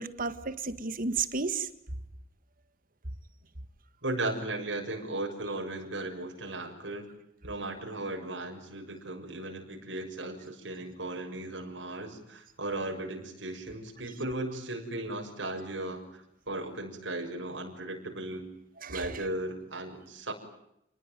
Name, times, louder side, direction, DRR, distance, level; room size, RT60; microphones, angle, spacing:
voice 1, 0.0-1.7 18.8-19.3, right 4 dB, 50° right, 1.8 m, -33 dB
voice 2, 4.0-7.1 7.4-18.5 18.9-20.3, right 2 dB, 75° right, 6.8 m, -36 dB
29.5 x 20.0 x 9.2 m
head